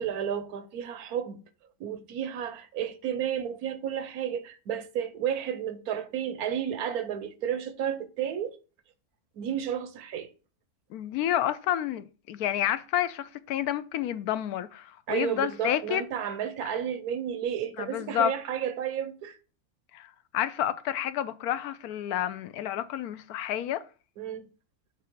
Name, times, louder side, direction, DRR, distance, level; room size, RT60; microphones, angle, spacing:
voice 1, 0.0-1.4 1.8-8.6 9.4-10.3 15.1-19.4 24.2-24.5, right 9 dB, 90° right, 1.3 m, -32 dB
voice 2, 10.9-16.0 17.8-18.3 19.9-23.8, left 11 dB, 85° left, 1.1 m, -30 dB
6.5 x 3.5 x 5.9 m
omnidirectional pair, 1.5 m